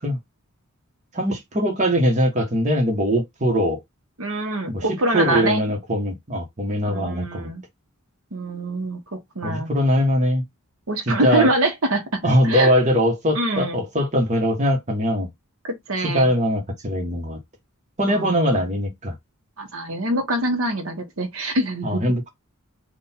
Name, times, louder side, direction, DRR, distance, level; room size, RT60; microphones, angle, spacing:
voice 1, 1.1-3.8 4.7-4.9 5.1-7.5 9.4-10.4 11.1-11.5 12.2-15.3 16.0-17.4 18.0-19.1 21.8-22.3, equal, 35° right, 1.2 m, -21 dB
voice 2, 4.2-5.7 6.9-7.6 8.3-9.7 10.9-12.7 13.3-13.8 15.6-16.3 18.1-18.6 19.6-22.0, right 2 dB, 70° right, 1.1 m, -25 dB
3.9 x 2.5 x 4.3 m
head